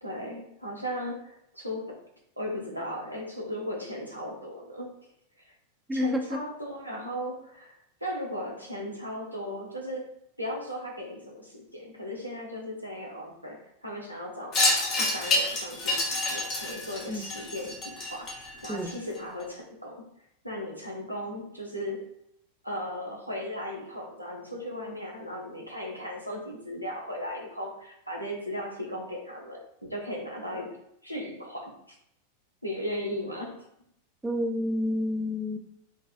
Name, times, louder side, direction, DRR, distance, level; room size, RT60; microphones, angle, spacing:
voice 1, 0.0-2.0 2.4-4.9 5.4-5.6 5.9-10.1 10.4-18.4 18.6-20.0 20.4-22.0 22.6-32.0 32.6-33.7, equal, 90° right, -1 dB, 0.7 m, -37 dB
voice 2, 5.9-6.4 17.1-17.3 18.7-18.9 34.2-35.6, left 1 dB, 10° right, 4 dB, 0.3 m, -29 dB
Wind chime, 14.5-19.2, left 2 dB, 35° left, 0.9 m, -28 dB
3.9 x 2.3 x 2.4 m, 0.77 s
figure-of-eight pair, 90°, 0 cm